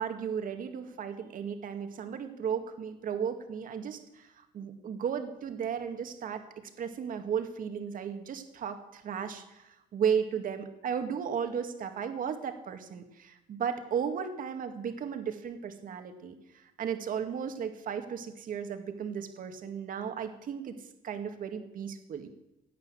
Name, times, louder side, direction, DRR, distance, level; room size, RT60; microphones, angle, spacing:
voice 1, 0.0-20.8 21.0-22.3, right 7 dB, 55° right, 7 dB, 2.0 m, -35 dB
17.0 x 9.5 x 7.6 m, 0.94 s
cardioid pair, 110°, 17 cm